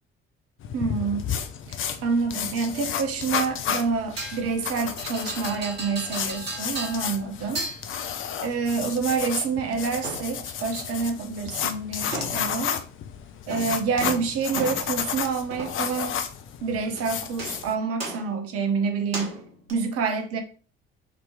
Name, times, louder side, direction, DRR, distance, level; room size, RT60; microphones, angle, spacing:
sound 1, 0.6-17.7, left 8 dB, 40° left, 0.6 m, -32 dB
voice 1, 0.7-1.4 1.7-7.7 8.4-12.7 13.5-16.2 16.6-19.4 19.7-20.4, right 5 dB, 50° right, 0.9 m, -27 dB
sound 2, 4.2-4.7 5.0-7.3 7.5-8.2 10.0-10.5 12.1-12.7 13.5-15.1 15.5-16.0 17.0-17.1 17.4-17.7 18.0-18.4 19.1-19.7, right 1 dB, 80° right, 1.1 m, -36 dB
5.0 x 2.9 x 3.4 m
figure-of-eight pair, 50°, 30 cm